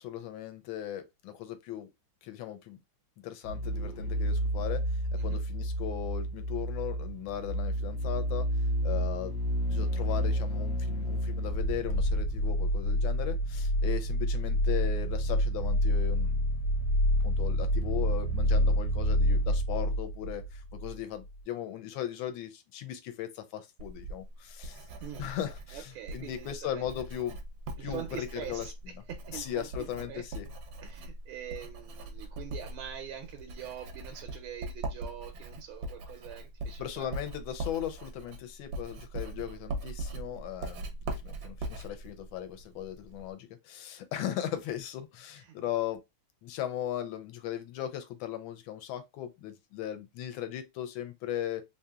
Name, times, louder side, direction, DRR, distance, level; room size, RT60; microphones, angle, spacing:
voice 1, 0.0-1.9 2.2-2.8 3.2-8.5 8.8-9.4 9.7-16.5 17.2-24.8 25.2-27.4 27.8-28.7 29.3-30.5 36.8-40.9 41.2-46.0 46.4-51.6, left 11 dB, 80° left, 1.4 m, -38 dB
sound 1, 3.4-21.0 21.2-21.3, equal, 60° left, 1.4 m, -29 dB
Writing, 23.8-43.3, right 2 dB, 70° right, 1.0 m, -41 dB
voice 2, 25.0-25.3 25.7-26.9 27.8-30.2 30.8-37.1 45.4-45.6, right 10 dB, 90° right, 1.4 m, -44 dB
3.4 x 2.7 x 2.3 m
omnidirectional pair, 2.2 m